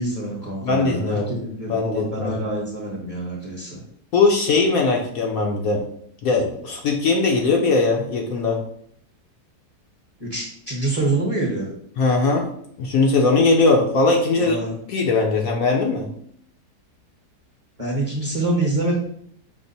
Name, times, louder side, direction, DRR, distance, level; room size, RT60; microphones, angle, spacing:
voice 1, 0.0-3.8 10.2-11.7 14.3-14.7 17.8-18.9, right 2 dB, 30° right, -3 dB, 0.8 m, -26 dB
voice 2, 0.6-1.3 1.7-2.3 4.1-5.8 6.2-8.6 12.0-12.5 12.8-14.6 14.9-16.1, left 3 dB, 65° left, 1 dB, 1.0 m, -20 dB
5.8 x 2.1 x 4.0 m, 0.67 s
omnidirectional pair, 1.8 m